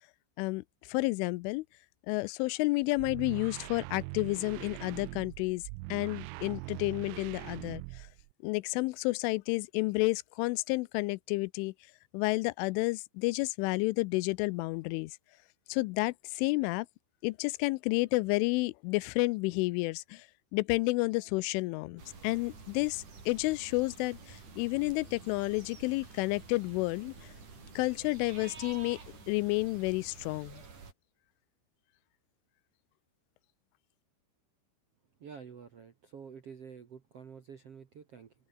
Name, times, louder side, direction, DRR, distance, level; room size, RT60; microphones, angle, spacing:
voice 1, 0.4-1.7 2.1-5.6 5.9-8.1 8.4-11.7 12.1-15.2 15.7-16.9 17.2-20.3 20.5-27.1 27.8-29.0 29.3-30.6, left 23 dB, 90° left, 3.1 m, -31 dB
sound 1, 2.8-8.3, right 25 dB, 90° right, 3.1 m, -42 dB
sound 2, 20.8-29.4, left 3 dB, 25° left, 5.1 m, -62 dB
sound 3, 22.0-30.9, right 5 dB, 40° right, 5.9 m, -50 dB
voice 2, 35.2-38.3, right 6 dB, 60° right, 1.6 m, -49 dB
open air
omnidirectional pair, 5.5 m